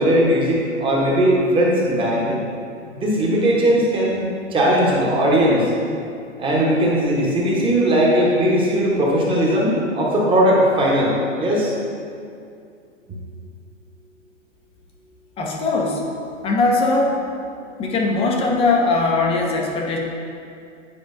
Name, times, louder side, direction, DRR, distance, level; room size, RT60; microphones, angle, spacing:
voice 1, 0.0-2.4 2.9-5.7 6.4-11.7, equal, 15° right, -4 dB, 1.0 m, -18 dB
voice 2, 15.4-16.0 16.4-17.2 17.8-20.0, left 3 dB, 15° left, -1 dB, 0.5 m, -20 dB
9.5 x 4.5 x 2.6 m, 2.4 s
hypercardioid pair, 135°, 38 cm